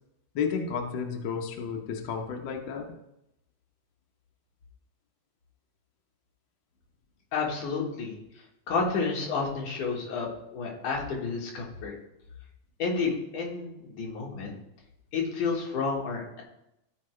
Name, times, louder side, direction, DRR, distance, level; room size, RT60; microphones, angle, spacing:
voice 1, 0.3-2.9, left 6 dB, 65° left, 3 dB, 1.1 m, -32 dB
voice 2, 7.3-8.2 8.7-11.9 12.8-14.5 15.1-16.4, left 4 dB, 80° left, -1 dB, 3.1 m, -30 dB
14.0 x 4.7 x 3.2 m, 0.84 s
omnidirectional pair, 3.4 m